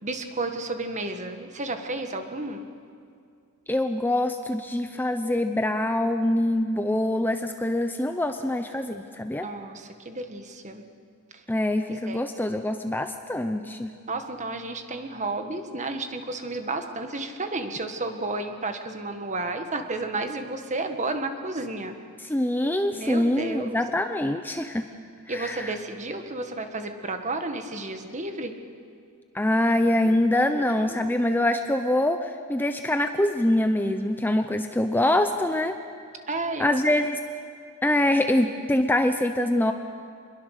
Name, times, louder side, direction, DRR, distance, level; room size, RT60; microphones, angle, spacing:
voice 1, 0.0-2.7 9.3-10.8 11.3-11.4 11.9-12.2 14.1-21.9 22.9-23.8 25.3-28.6 30.0-30.1 30.9-31.0 36.3-36.8, right 2 dB, 35° right, 6 dB, 1.6 m, -32 dB
voice 2, 3.7-9.5 11.5-13.9 22.2-24.9 25.3-25.7 29.3-35.7 36.6-37.2 37.8-39.7, left 1 dB, 10° left, 7 dB, 0.7 m, -24 dB
26.5 x 21.5 x 6.7 m, 2.3 s
head